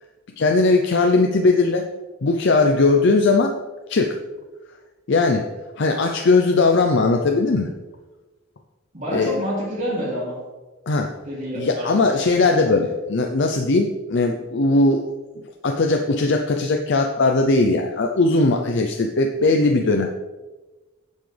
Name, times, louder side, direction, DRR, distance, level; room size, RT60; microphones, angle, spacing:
voice 1, 0.4-1.8 2.2-3.5 3.9-4.2 5.1-5.5 5.8-7.7 9.1-9.3 10.9-11.1 11.6-15.0 15.6-20.1, left 3 dB, 60° left, 3 dB, 0.6 m, -19 dB
voice 2, 8.9-10.4 11.3-12.1, equal, 40° right, -8 dB, 2.9 m, -27 dB
9.3 x 7.3 x 3.4 m, 1.2 s
head